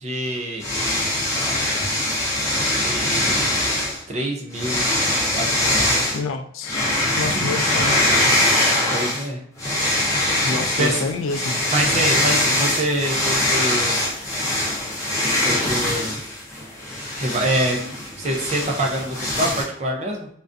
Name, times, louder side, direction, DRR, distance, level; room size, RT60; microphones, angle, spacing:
voice 1, 0.0-0.7 2.8-3.4 4.1-4.8 5.3-6.0 7.2-7.4 8.8-9.4 10.8-11.1 11.7-14.0 15.4-16.2 17.2-17.8 18.2-20.3, right 1 dB, 35° right, 0 dB, 0.4 m, -25 dB
sound 1, 0.6-4.0 4.5-6.2 6.6-9.2 9.6-19.6, left 1 dB, 15° left, 0.6 m, -22 dB
voice 2, 6.1-6.8 7.2-8.0 10.4-11.6, left 4 dB, 85° left, 7 dB, 0.3 m, -27 dB
2.4 x 2.2 x 2.4 m, 0.66 s
head